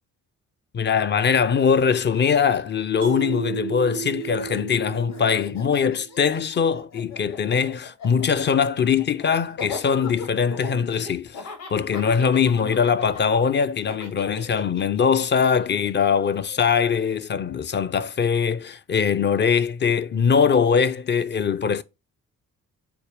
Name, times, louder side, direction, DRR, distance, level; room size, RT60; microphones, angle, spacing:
voice 1, 0.7-11.4 11.7-21.8, left 6 dB, 25° left, 0.4 m, -22 dB
Laughter, 1.2-1.3 1.5-3.9 4.2-17.2, left 4 dB, 65° left, 2.7 m, -40 dB
Mallet percussion, 3.0-6.3, right 13 dB, 40° right, 0.4 m, -34 dB
5.1 x 4.2 x 4.9 m
figure-of-eight pair, 40°, 48 cm